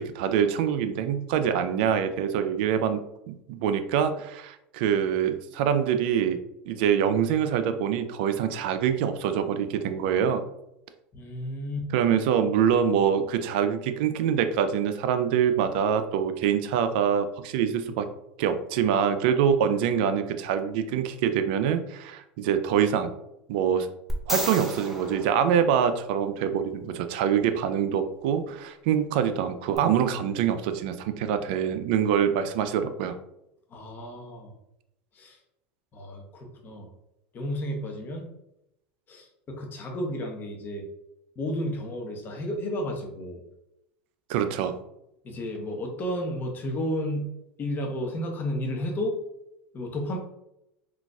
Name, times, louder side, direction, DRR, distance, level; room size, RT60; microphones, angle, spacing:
voice 1, 0.0-3.0 3.3-6.4 6.7-10.4 11.9-18.1 18.4-23.1 23.5-23.9 24.3-33.2 44.3-44.8, right 8 dB, 70° right, 9 dB, 0.4 m, -25 dB
voice 2, 11.1-11.9 33.7-34.5 35.1-35.4 35.9-36.9 37.3-38.2 39.1-40.9 41.4-43.4 45.2-47.3 47.6-49.2 49.7-50.2, equal, 35° left, 2 dB, 0.9 m, -32 dB
sound 1, 24.1-26.3 29.7-29.8, equal, 5° right, 0.7 m, -33 dB
3.9 x 2.4 x 2.3 m, 0.83 s
hypercardioid pair, 100°, 6 cm